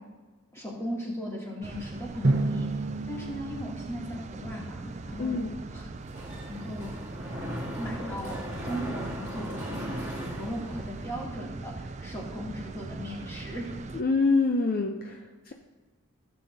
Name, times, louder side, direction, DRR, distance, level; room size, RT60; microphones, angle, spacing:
voice 1, 0.5-2.7 3.0-5.9 6.5-6.9 7.8-13.7, equal, 10° left, -4 dB, 2.3 m, -38 dB
sound 1, 1.6-14.0, right 3 dB, 30° right, 0.4 m, -41 dB
Drum, 2.2-5.0, right 2 dB, 55° right, 0.9 m, -30 dB
voice 2, 5.2-5.5 13.9-15.5, left 3 dB, 40° left, 4 dB, 0.5 m, -26 dB
Mechanisms, 6.0-11.2, equal, 15° right, 2.5 m, -38 dB
15.5 x 7.6 x 2.7 m, 1.3 s
head